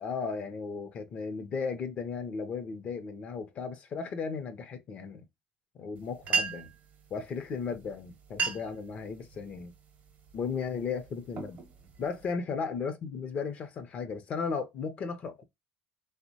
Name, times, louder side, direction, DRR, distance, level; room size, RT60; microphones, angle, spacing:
voice 1, 0.0-5.2 5.7-6.7 7.1-9.7 10.3-11.6 12.0-15.4, left 5 dB, 45° left, 0.5 m, -35 dB
sound 1, 6.0-6.1 6.2-6.8 7.7-7.9 8.2-8.8 9.3-9.7 10.3-10.5 11.1-12.3, right 5 dB, 50° right, 0.7 m, -33 dB
2.9 x 2.0 x 2.6 m
supercardioid pair, 95°, 3 cm